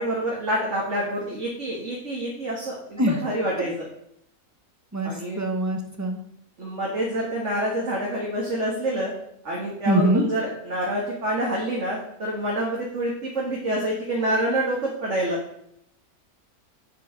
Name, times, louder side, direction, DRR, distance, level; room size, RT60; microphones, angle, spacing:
voice 1, 0.0-3.8 5.0-5.5 6.6-9.1 9.4-15.4, right 1 dB, 55° right, -3 dB, 2.2 m, -27 dB
voice 2, 4.9-6.2 9.8-10.2, right 1 dB, 10° right, 4 dB, 1.2 m, -23 dB
7.9 x 6.0 x 7.4 m, 0.75 s
omnidirectional pair, 1.5 m